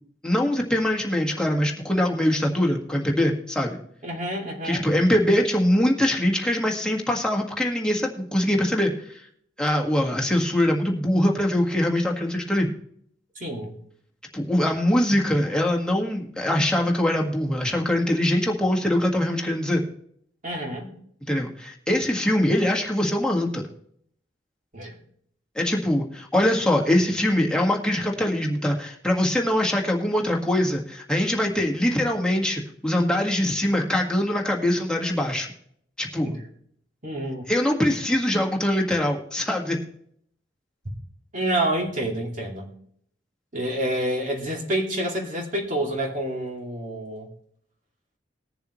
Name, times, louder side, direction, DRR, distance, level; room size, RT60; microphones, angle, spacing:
voice 1, 0.2-3.8 4.6-9.2 9.6-12.7 14.3-19.8 21.2-23.6 25.5-35.5 36.0-36.3 37.5-39.8, left 1 dB, 5° left, 0 dB, 1.7 m, -23 dB
voice 2, 4.0-4.9 13.4-13.7 20.4-20.9 24.7-24.9 36.2-36.4 37.0-37.5 41.3-42.7 43.5-47.3, right 1 dB, 45° right, 0 dB, 2.6 m, -28 dB
20.5 x 7.0 x 3.1 m, 0.66 s
head